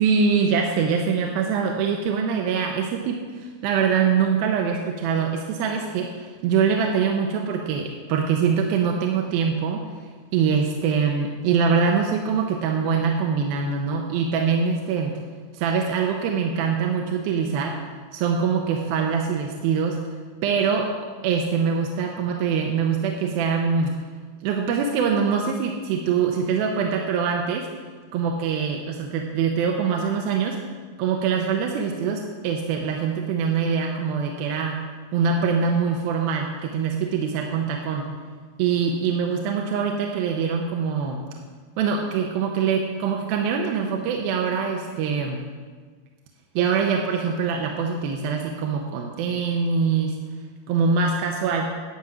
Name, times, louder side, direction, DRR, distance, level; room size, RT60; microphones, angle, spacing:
voice 1, 0.0-9.9 10.3-15.2 15.5-17.8 18.1-20.0 20.4-20.9 21.2-24.0 24.4-27.7 28.1-30.6 31.0-34.8 35.1-38.1 38.6-41.2 41.8-45.4 46.6-50.2 50.7-51.7, right 6 dB, 80° right, 2 dB, 2.6 m, -23 dB
11.5 x 5.9 x 7.7 m, 1.5 s
omnidirectional pair, 4.3 m